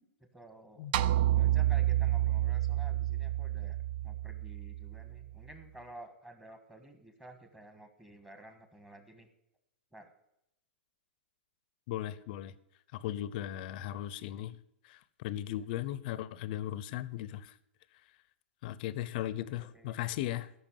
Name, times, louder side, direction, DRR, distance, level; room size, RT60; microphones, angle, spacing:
voice 1, 0.2-0.9 1.2-9.3 9.9-10.1 19.6-20.1, right 1 dB, 5° right, 7 dB, 1.6 m, -52 dB
sound 1, 0.9-5.3, right 14 dB, 50° right, 0.5 m, -29 dB
voice 2, 11.9-12.5 12.9-14.6 14.8-17.5 18.6-20.5, left 13 dB, 50° left, 17 dB, 0.7 m, -37 dB
13.5 x 5.9 x 7.3 m, 0.81 s
hypercardioid pair, 140°, 6 cm